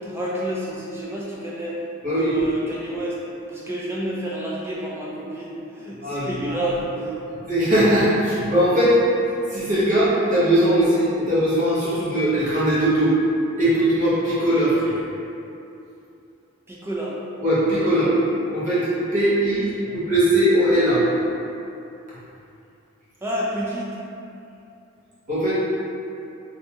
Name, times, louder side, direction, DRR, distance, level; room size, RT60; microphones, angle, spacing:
voice 1, 0.0-1.8 2.0-3.2 3.5-7.2 16.7-17.1 19.8-20.0 23.2-24.0, right 1 dB, 10° right, -6 dB, 0.3 m, -29 dB
voice 2, 6.0-6.6 7.4-8.9 9.5-13.1 13.6-14.9 17.4-18.1 18.5-18.9 19.1-21.0 25.3-25.5, right 1 dB, 35° right, -12 dB, 0.9 m, -20 dB
2.6 x 2.2 x 2.7 m, 2.7 s
head